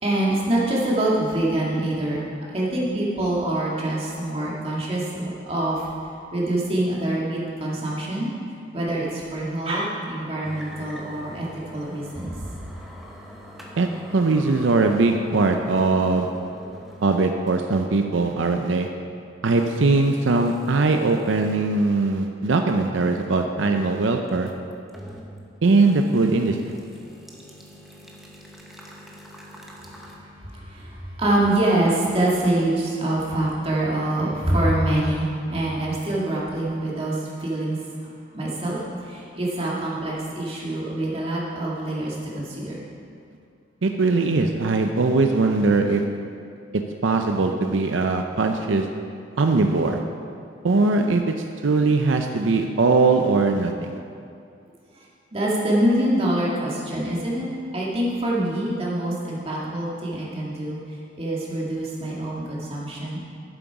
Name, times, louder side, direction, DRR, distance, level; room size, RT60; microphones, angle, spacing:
voice 1, 0.0-2.2 2.5-5.9 6.3-8.3 8.7-11.5 11.7-12.5 30.1-37.8 38.3-42.8 54.9-55.0 55.3-57.5 57.7-60.8 61.2-63.2, right 1 dB, 30° right, -5 dB, 2.1 m, -25 dB
sound 1, 10.4-17.1 17.5-17.6 18.3-18.4 19.5-21.6 22.1-22.2 24.3-25.3 25.6-30.2, equal, ahead, 1.1 m, -44 dB
voice 2, 14.1-16.3 17.0-18.9 19.4-24.5 25.6-26.8 43.8-46.0 47.0-48.9 49.4-50.0 50.6-51.2 51.6-53.9, right 3 dB, 85° right, 4 dB, 0.6 m, -20 dB
11.5 x 7.9 x 4.8 m, 2.4 s
head